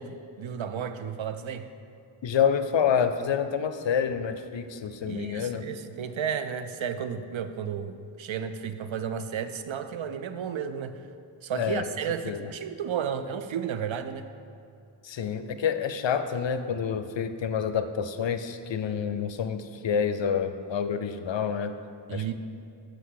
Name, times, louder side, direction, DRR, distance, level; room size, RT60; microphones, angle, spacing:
voice 1, 0.0-1.7 5.1-11.0 11.4-14.3 22.1-22.3, right 7 dB, 75° right, 10 dB, 0.5 m, -33 dB
voice 2, 2.2-5.6 11.5-11.8 12.2-12.5 15.0-21.7 22.1-22.3, left 7 dB, 70° left, 10 dB, 0.5 m, -28 dB
5.8 x 5.0 x 6.4 m, 2.5 s
wide cardioid pair, 65°, 47 cm